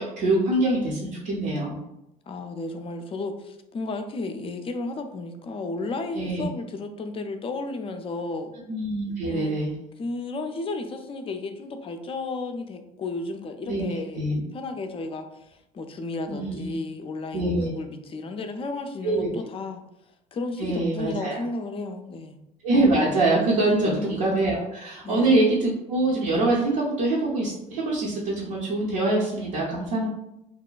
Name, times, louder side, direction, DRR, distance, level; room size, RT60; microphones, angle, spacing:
voice 1, 0.0-1.8 6.2-6.5 8.7-9.7 13.7-13.9 14.1-14.4 16.3-16.7 17.3-17.7 19.0-19.3 20.6-21.4 22.6-30.1, right 2 dB, 65° right, -6 dB, 0.7 m, -24 dB
voice 2, 2.3-8.5 9.3-9.5 10.0-14.2 14.5-19.8 20.3-22.4 23.8-24.2 25.0-25.4, left 3 dB, 30° left, 7 dB, 0.4 m, -33 dB
2.9 x 2.1 x 2.3 m, 0.86 s
hypercardioid pair, 65°, 20 cm